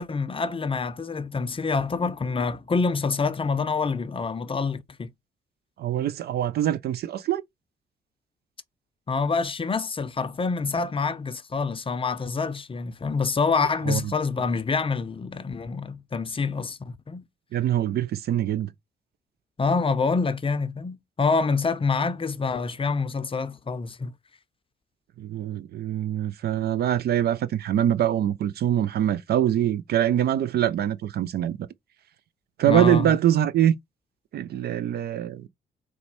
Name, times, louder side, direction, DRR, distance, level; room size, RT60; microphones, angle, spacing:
voice 1, 0.0-5.1 9.1-17.2 19.6-24.1 32.7-33.2, left 4 dB, 25° left, 0.6 m, -26 dB
voice 2, 5.8-7.4 13.9-14.0 17.5-18.7 25.2-31.6 32.6-33.7 34.3-35.5, right 11 dB, 50° right, 0.4 m, -24 dB
4.1 x 2.2 x 4.2 m
hypercardioid pair, 45°, 21 cm